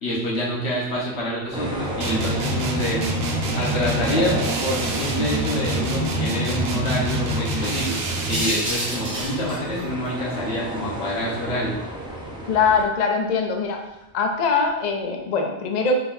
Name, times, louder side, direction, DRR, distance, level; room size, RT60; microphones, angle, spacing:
voice 1, 0.0-3.0 3.5-7.9 8.3-11.7, equal, 80° left, -5 dB, 1.5 m, -27 dB
sound 1, 0.8-1.3 1.8-3.9 4.2-5.2 5.5-5.6 6.0-6.2 6.6-6.7 7.3-10.8 11.2-13.2 13.9-14.1 14.5-14.9, right 1 dB, 25° right, 0.9 m, -33 dB
sound 2, 1.5-12.8, right 1 dB, 5° right, 0.5 m, -32 dB
sound 3, 2.0-8.5, right 1 dB, 70° right, 0.8 m, -26 dB
voice 2, 12.5-13.8 14.1-15.9, left 5 dB, 50° left, 3 dB, 0.5 m, -22 dB
4.2 x 3.7 x 2.6 m, 0.92 s
omnidirectional pair, 1.1 m